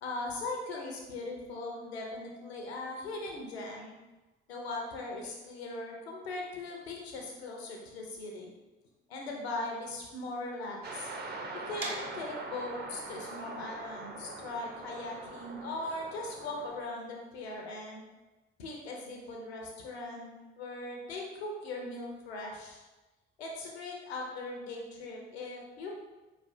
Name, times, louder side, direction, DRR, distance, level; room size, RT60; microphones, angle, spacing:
voice 1, 0.0-3.9 4.5-8.5 9.1-11.1 11.5-18.0 18.6-20.3 20.6-22.8 23.4-25.9, left 2 dB, 90° left, 0 dB, 0.6 m, -39 dB
sound 1, 10.8-16.8, right 3 dB, 30° right, 0.7 m, -43 dB
sound 2, 11.8-17.6, right 3 dB, 55° right, 1.0 m, -46 dB
4.5 x 3.2 x 2.6 m, 1.1 s
hypercardioid pair, 45°, 31 cm